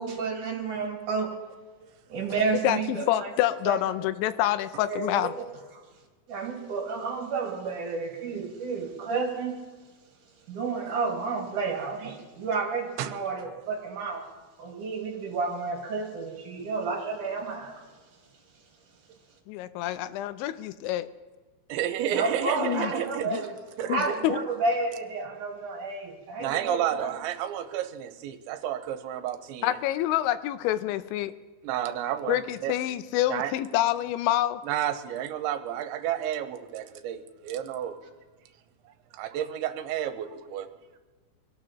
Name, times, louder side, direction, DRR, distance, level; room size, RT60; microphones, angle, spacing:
voice 1, 0.0-1.3 2.1-3.3 3.7-3.8 4.9-5.4 5.7-5.8 6.3-9.6 10.5-14.2 14.6-17.8 22.1-23.5 23.9-27.1, right 4 dB, 50° right, 0 dB, 2.8 m, -31 dB
voice 2, 2.6-5.3 19.5-21.1 22.6-22.9 23.3-23.4 23.9-24.4 29.6-31.3 32.3-34.6, left 13 dB, 85° left, 12 dB, 2.9 m, -27 dB
voice 3, 21.7-23.4 23.8-24.2 26.4-29.8 31.6-32.8 33.3-33.5 34.6-38.0 39.1-40.7, right 11 dB, 85° right, 8 dB, 3.0 m, -31 dB
24.5 x 17.5 x 3.0 m, 1.3 s
omnidirectional pair, 5.4 m